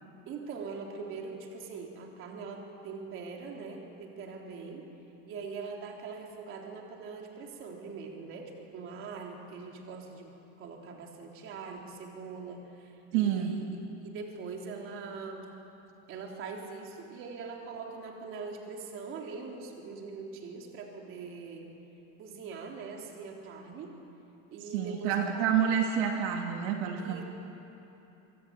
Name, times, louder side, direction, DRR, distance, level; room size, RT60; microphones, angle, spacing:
voice 1, 0.3-4.9 5.3-15.5 16.1-21.7 22.2-23.9 24.5-25.6 26.9-27.2, right 4 dB, 35° right, 1 dB, 3.8 m, -42 dB
voice 2, 13.1-13.6 24.7-27.2, right 8 dB, 65° right, 2 dB, 2.5 m, -28 dB
25.5 x 23.5 x 9.0 m, 3.0 s
supercardioid pair, 165°, 35 cm